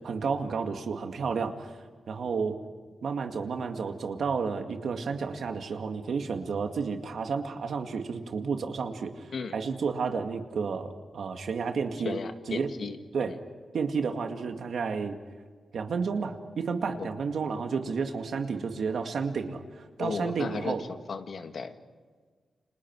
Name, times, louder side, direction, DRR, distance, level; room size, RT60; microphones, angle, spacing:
voice 1, 0.0-2.6 3.0-12.1 12.5-12.7 13.1-13.3 13.7-15.2 15.7-20.8, right 5 dB, 80° right, 5 dB, 2.1 m, -31 dB
voice 2, 12.0-13.0 13.3-13.4 17.0-17.1 20.0-21.7, left 5 dB, 70° left, 6 dB, 1.9 m, -35 dB
30.0 x 27.0 x 4.8 m, 1.5 s
wide cardioid pair, 95°, 0 cm